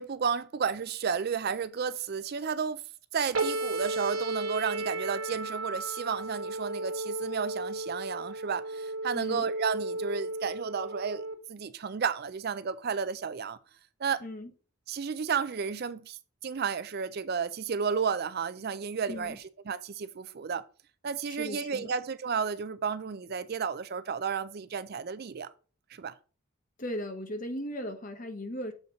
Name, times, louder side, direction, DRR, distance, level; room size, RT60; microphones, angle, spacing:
voice 1, 0.0-2.8 3.1-13.6 14.0-14.2 14.9-20.6 21.0-25.5 25.9-26.1, right 6 dB, 45° right, 0.4 m, -32 dB
sound 1, 3.3-11.4, right 2 dB, 65° right, 1.3 m, -34 dB
voice 2, 9.1-9.4 14.2-14.5 19.1-19.4 21.3-21.9 26.8-28.7, left 1 dB, 35° left, 1.0 m, -37 dB
7.2 x 3.9 x 5.0 m
head